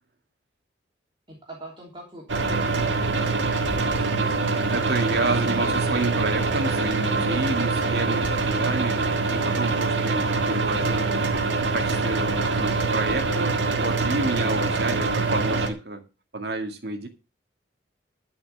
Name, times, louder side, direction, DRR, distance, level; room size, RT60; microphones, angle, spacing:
voice 1, 1.3-4.6 7.7-8.0, right 1 dB, 25° right, -1 dB, 3.0 m, -44 dB
sound 1, 2.3-15.7, right 3 dB, 75° right, 1.7 m, -24 dB
voice 2, 4.7-11.4 11.7-16.0 16.3-17.1, right 2 dB, 55° right, 5 dB, 2.0 m, -29 dB
12.0 x 5.7 x 6.8 m, 0.31 s
head